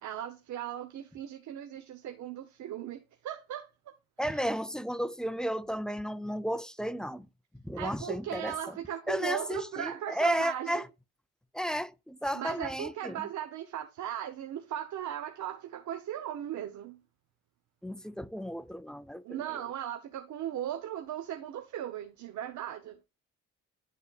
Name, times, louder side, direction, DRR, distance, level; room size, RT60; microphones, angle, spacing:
voice 1, 0.0-3.9 4.3-4.4 7.8-10.9 12.3-17.0 19.2-23.0, right 11 dB, 70° right, 1.0 m, -38 dB
voice 2, 4.2-7.3 7.5-8.8 9.1-10.9 11.5-13.2 17.8-19.4, equal, ahead, 0.4 m, -33 dB
11.5 x 4.1 x 2.4 m
cardioid pair, 90°, 30 cm